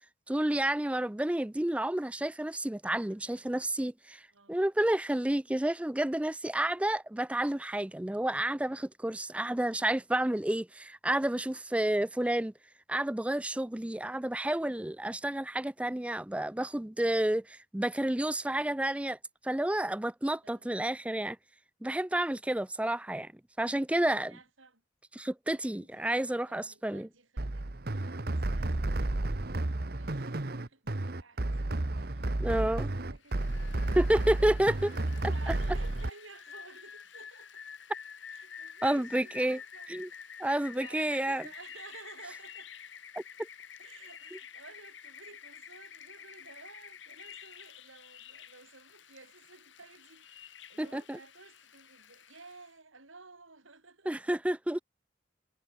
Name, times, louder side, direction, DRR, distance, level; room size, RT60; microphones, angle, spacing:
voice 1, 0.3-4.2 4.5-12.5 12.9-19.2 19.4-21.4 21.8-23.3 23.6-24.3 25.2-27.1 32.4-32.9 34.0-34.9 38.8-39.6 39.9-40.1 40.4-41.4 50.8-51.2 54.1-54.8, right 1 dB, 5° right, 0.4 m, -30 dB
voice 2, 3.0-3.9 4.3-4.6 6.6-7.0 20.4-21.0 23.8-24.8 25.5-34.6 35.2-37.6 38.3-42.7 43.8-54.1, right 3 dB, 90° right, 7.4 m, -55 dB
sound 1, 27.4-36.1, right 2 dB, 50° right, 1.1 m, -32 dB
Rain, 33.2-52.7, left 7 dB, 70° left, 2.3 m, -49 dB
head